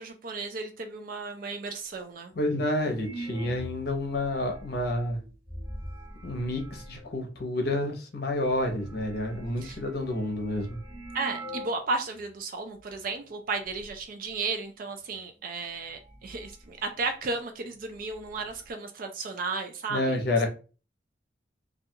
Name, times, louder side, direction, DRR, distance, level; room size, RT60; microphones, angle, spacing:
voice 1, 0.0-2.3 9.6-9.8 11.1-20.2, right 3 dB, 50° right, 6 dB, 0.3 m, -34 dB
sound 1, 2.3-2.4 2.9-7.2 8.0-8.1 8.3-11.9 12.2-12.3 12.9-13.2 13.5-14.0 15.3-15.4 15.8-17.4 17.6-17.7 18.0-18.7, right 1 dB, 25° right, 0.9 m, -43 dB
voice 2, 2.4-5.2 6.2-10.8 19.9-20.5, left 1 dB, 55° left, 3 dB, 0.7 m, -29 dB
2.3 x 2.3 x 2.7 m, 0.34 s
head